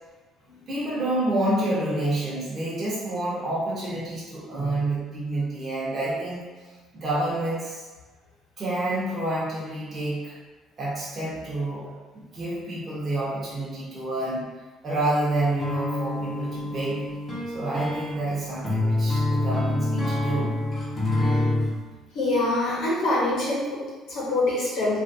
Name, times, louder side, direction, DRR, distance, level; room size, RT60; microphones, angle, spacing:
voice 1, 0.7-6.4 6.9-7.8 8.6-10.4 10.8-14.5 14.8-17.0 17.5-20.5, right 2 dB, 35° right, -8 dB, 1.2 m, -28 dB
sound 1, 15.6-21.7, left 2 dB, 40° left, 1.1 m, -26 dB
voice 2, 22.1-25.0, left 2 dB, 70° left, -5 dB, 1.1 m, -25 dB
3.0 x 2.7 x 2.6 m, 1.3 s
cardioid pair, 100°, 0 cm